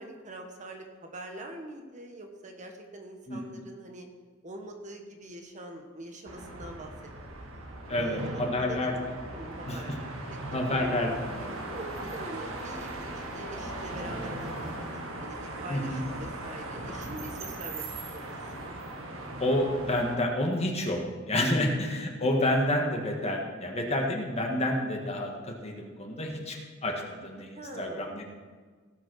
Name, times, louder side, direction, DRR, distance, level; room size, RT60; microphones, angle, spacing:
voice 1, 0.0-4.1 4.4-6.9 7.3-7.4 8.0-10.6 11.7-17.9 18.1-18.7 21.4-21.8 27.6-28.1, right 1 dB, 35° right, 4 dB, 1.3 m, -44 dB
sound 1, 6.3-20.2, right 1 dB, 80° right, 1.9 m, -38 dB
voice 2, 7.9-8.9 9.7-9.8 10.5-11.5 15.7-16.0 19.4-21.0 21.3-26.6 26.8-28.2, left 1 dB, 30° left, 1 dB, 1.7 m, -29 dB
17.0 x 6.1 x 6.3 m, 1.5 s
head